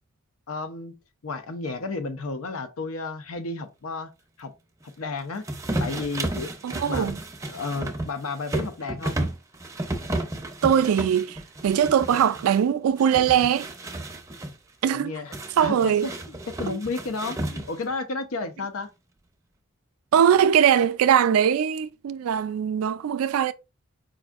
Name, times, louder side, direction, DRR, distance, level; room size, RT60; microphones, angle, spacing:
voice 1, 0.5-0.9 1.2-4.1 4.4-4.5 5.0-5.4 5.8-6.5 6.8-7.1 7.5-9.2 14.9-15.3 15.6-18.9, left 3 dB, 85° left, 0.7 m, -32 dB
sound 1, 5.4-12.6 13.0-14.5 15.3-17.9, right 1 dB, 15° right, 0.5 m, -32 dB
voice 2, 6.6-7.2 10.6-13.7 14.8-15.1 15.6-16.1 20.1-23.5, right 8 dB, 85° right, 0.3 m, -21 dB
4.7 x 2.6 x 2.3 m
head